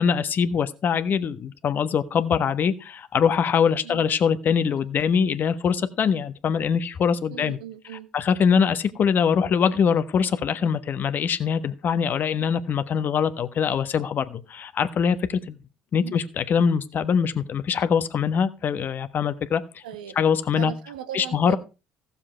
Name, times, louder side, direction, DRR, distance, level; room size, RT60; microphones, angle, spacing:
voice 1, 0.0-7.6 8.1-15.6 15.9-19.8 20.2-20.7 21.1-21.6, left 7 dB, 50° left, 1.2 m, -23 dB
voice 2, 7.3-8.1 16.0-16.2 19.8-20.2 20.6-21.6, right 11 dB, 85° right, 1.1 m, -37 dB
15.0 x 7.2 x 4.4 m
hypercardioid pair, 65°, 4 cm